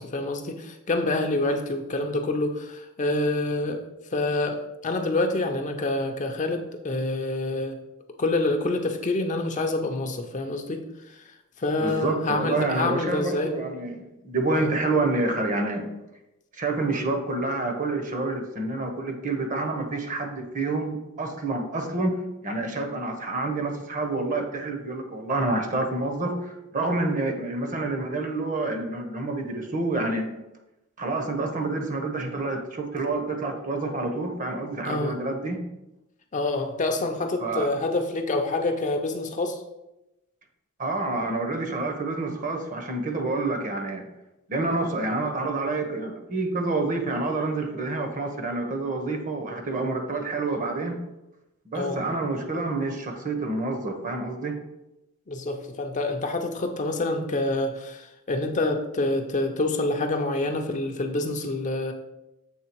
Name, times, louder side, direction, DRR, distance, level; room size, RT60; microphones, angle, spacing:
voice 1, 0.0-3.8 4.1-4.6 4.8-7.8 8.2-11.3 11.6-13.5 14.5-14.7 34.8-35.2 36.3-39.6 51.7-52.0 55.3-61.9, left 2 dB, 35° left, 5 dB, 0.5 m, -27 dB
voice 2, 11.8-15.9 16.5-30.3 31.0-35.6 37.4-37.7 40.8-44.0 44.5-51.0 51.7-54.6, right 2 dB, 35° right, 4 dB, 0.9 m, -28 dB
7.4 x 3.3 x 4.5 m, 0.93 s
head